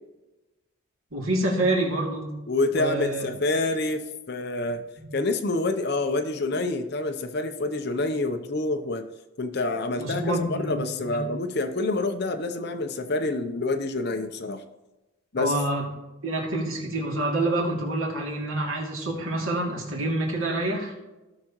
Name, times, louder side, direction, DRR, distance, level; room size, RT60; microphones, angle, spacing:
voice 1, 1.1-2.3 2.7-3.3 5.0-5.1 10.0-11.3 15.4-15.8 16.2-20.9, right 2 dB, 90° right, -2 dB, 2.6 m, -27 dB
voice 2, 2.5-4.8 5.1-9.1 9.4-14.6 15.3-15.6, left 2 dB, 50° left, 8 dB, 0.7 m, -27 dB
16.5 x 6.4 x 3.0 m, 1.1 s
head